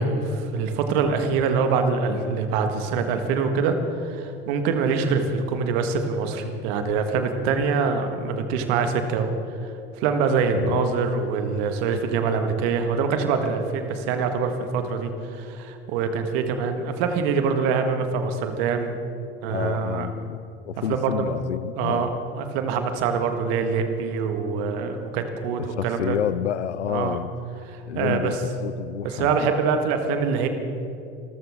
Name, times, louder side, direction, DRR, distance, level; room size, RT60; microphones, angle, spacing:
voice 1, 0.0-9.3 9.6-9.7 10.0-19.0 19.4-20.1 20.9-21.3 21.8-22.1 22.3-26.2 26.9-27.2 27.7-28.4 29.0-30.5, right 5 dB, 60° right, 7 dB, 1.7 m, -24 dB
voice 2, 19.5-22.1 25.6-27.3 27.9-29.3, left 9 dB, 85° left, 18 dB, 0.5 m, -29 dB
26.5 x 14.0 x 3.7 m, 2.7 s
figure-of-eight pair, 70°, 34 cm